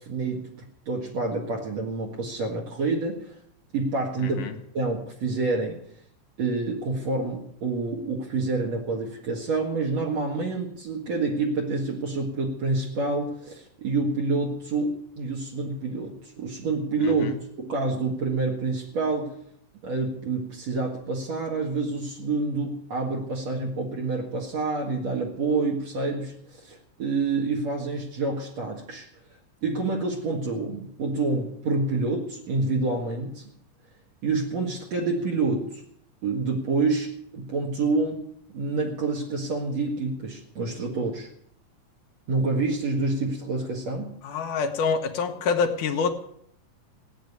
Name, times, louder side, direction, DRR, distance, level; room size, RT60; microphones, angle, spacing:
voice 1, 0.0-3.3 3.7-5.8 6.4-19.4 19.8-29.1 29.6-33.4 34.2-35.8 36.2-38.2 38.5-41.3 42.3-44.2, right 3 dB, 55° right, -2 dB, 2.8 m, -28 dB
voice 2, 4.2-4.5 17.0-17.3 44.2-46.1, left 5 dB, 75° left, 5 dB, 2.6 m, -26 dB
18.0 x 9.3 x 8.2 m, 0.69 s
omnidirectional pair, 3.8 m